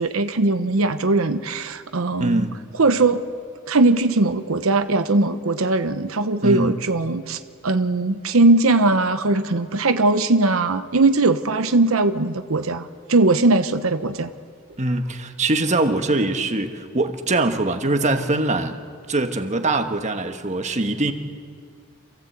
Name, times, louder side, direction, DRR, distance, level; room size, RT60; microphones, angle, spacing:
voice 1, 0.0-2.5 2.7-3.2 3.7-14.3, right 2 dB, 75° right, 9 dB, 0.9 m, -20 dB
voice 2, 2.2-2.6 6.4-6.8 14.8-18.8 19.1-21.1, right 2 dB, 35° right, 6 dB, 1.3 m, -22 dB
28.0 x 15.5 x 8.1 m, 2.2 s
head